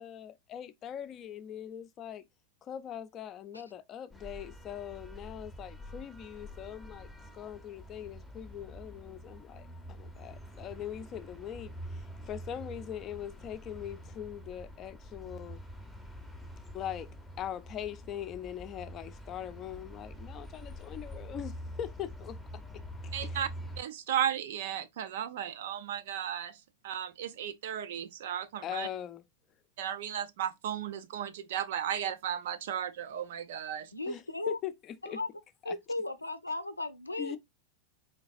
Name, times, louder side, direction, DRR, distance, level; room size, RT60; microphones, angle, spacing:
voice 1, 0.0-2.2 2.6-15.6 16.7-22.4 23.0-23.4 28.6-29.2 34.1-34.7 35.1-35.2 35.7-35.8 37.2-37.4, left 10 dB, 30° left, 0.6 m, -41 dB
sound 1, 4.1-23.8, equal, ahead, 0.8 m, -46 dB
voice 2, 23.1-23.5 23.8-26.6 26.8-28.9 29.8-33.9, right 10 dB, 55° right, 0.6 m, -35 dB
voice 3, 33.9-34.6 35.0-35.3 35.6-37.4, left 2 dB, 85° left, 0.6 m, -36 dB
4.5 x 3.8 x 2.5 m
figure-of-eight pair, 90°, 0 cm